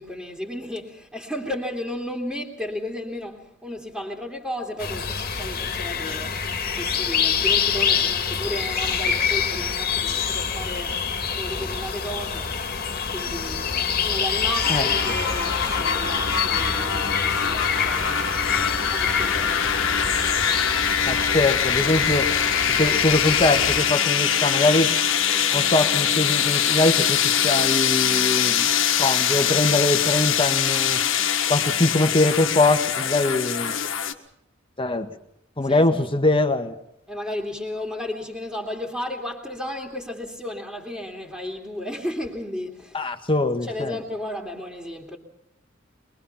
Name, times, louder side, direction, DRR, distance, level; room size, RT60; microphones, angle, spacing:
voice 1, 0.0-11.0 11.4-12.6 13.1-18.3 18.9-19.7 25.3-25.6 33.5-33.7 35.6-36.1 37.1-43.1 43.6-45.2, left 1 dB, ahead, 2.7 m, -34 dB
sound 1, 4.8-23.8, left 6 dB, 50° left, 2.1 m, -26 dB
sound 2, 14.6-34.1, left 8 dB, 80° left, 1.7 m, -23 dB
voice 2, 14.7-15.1 21.1-22.3 22.8-24.9 25.5-28.7 29.0-31.0 31.5-33.7 34.8-35.1 35.6-36.7 42.9-43.9, left 2 dB, 25° left, 1.6 m, -22 dB
23.5 x 22.5 x 5.9 m
head